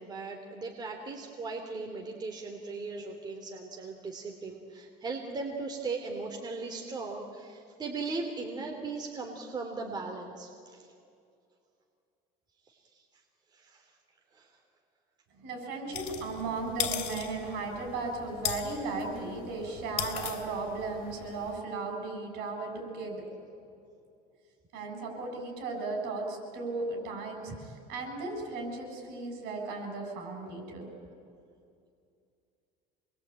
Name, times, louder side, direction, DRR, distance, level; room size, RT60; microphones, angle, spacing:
voice 1, 0.0-10.9 12.7-13.0 13.5-13.9 14.3-14.6 27.5-27.6, right 3 dB, 25° right, 2 dB, 2.8 m, -38 dB
voice 2, 15.4-23.2 24.7-27.5 27.9-30.9, right 3 dB, 70° right, 4 dB, 7.3 m, -36 dB
sound 1, 15.9-21.6, left 12 dB, 70° left, 2.9 m, -38 dB
26.5 x 21.5 x 8.9 m, 2.5 s
cardioid pair, 140°, 17 cm